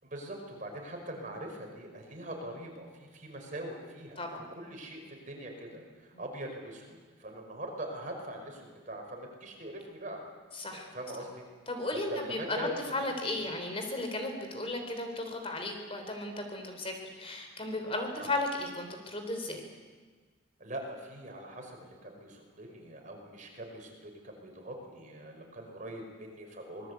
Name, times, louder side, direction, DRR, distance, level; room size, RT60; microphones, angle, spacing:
voice 1, 0.0-4.2 4.6-10.2 10.7-11.4 12.1-13.5 18.2-18.3 20.6-26.9, right 1 dB, 40° right, 2 dB, 5.4 m, -42 dB
voice 2, 10.6-10.9 11.7-19.7, left 2 dB, 30° left, 5 dB, 3.5 m, -35 dB
26.0 x 20.5 x 8.3 m, 1.4 s
head